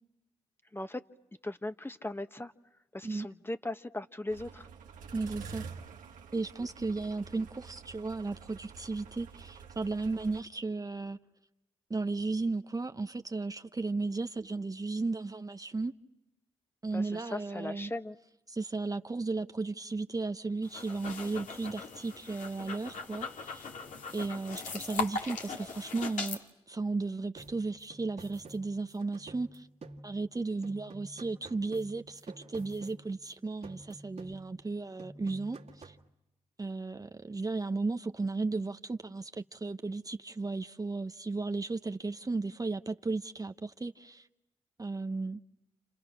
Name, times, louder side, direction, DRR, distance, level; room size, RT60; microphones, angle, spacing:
voice 1, 1.4-2.5 2.9-4.7 16.9-18.2, left 2 dB, 15° left, 1.5 m, -38 dB
sound 1, 4.3-10.4, right 6 dB, 85° right, 1.4 m, -48 dB
voice 2, 5.1-5.6 6.3-11.2 11.9-15.9 16.8-17.9 18.5-23.7 24.1-26.4 26.7-29.7 30.0-36.0 36.6-44.3 44.8-45.4, right 3 dB, 25° right, 1.0 m, -35 dB
sound 2, 20.6-26.4, left 5 dB, 75° left, 2.6 m, -39 dB
sound 3, 27.4-30.4 30.6-33.3 33.6-34.7 35.0-36.1, right 2 dB, 55° right, 2.3 m, -50 dB
29.5 x 29.5 x 6.0 m
supercardioid pair, 45°, 13 cm